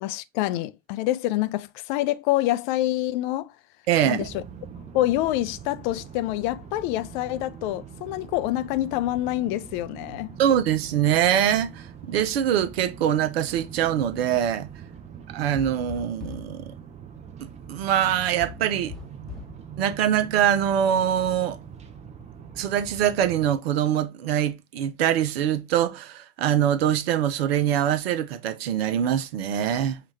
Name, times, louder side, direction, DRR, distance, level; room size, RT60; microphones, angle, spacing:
voice 1, 0.0-3.5 4.0-4.4 4.9-10.4, left 15 dB, 45° left, 0.5 m, -26 dB
voice 2, 3.9-4.3 10.4-14.7 15.3-16.7 17.7-18.9 19.8-21.6 22.6-30.0, right 10 dB, 60° right, 0.7 m, -23 dB
sound 1, 4.2-23.6, right 7 dB, 20° right, 0.6 m, -43 dB
sound 2, 15.5-16.6 18.4-19.6, left 6 dB, ahead, 1.0 m, -40 dB
5.8 x 2.4 x 3.0 m
figure-of-eight pair, 85°, 35 cm